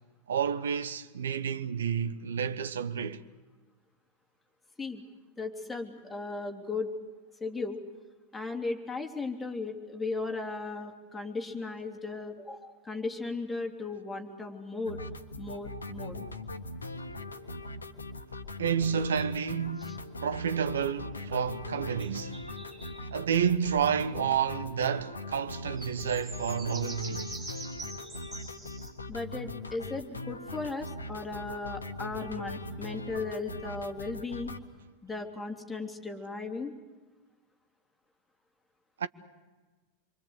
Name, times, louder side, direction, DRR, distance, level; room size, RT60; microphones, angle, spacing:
voice 1, 0.3-3.2 18.6-22.4 23.1-27.3 39.0-39.1, right 7 dB, 65° right, 1.2 m, -30 dB
voice 2, 5.4-6.9 7.4-7.8 8.3-15.0 15.4-16.2 19.8-20.0 29.1-34.5 35.0-36.7, left 3 dB, 10° left, 3.2 m, -36 dB
sound 1, 14.9-34.6, left 2 dB, 75° left, 1.4 m, -40 dB
sound 2, 22.0-23.0 25.8-28.9, right 2 dB, 20° right, 7.5 m, -44 dB
26.5 x 24.5 x 8.2 m
figure-of-eight pair, 90°, 0 cm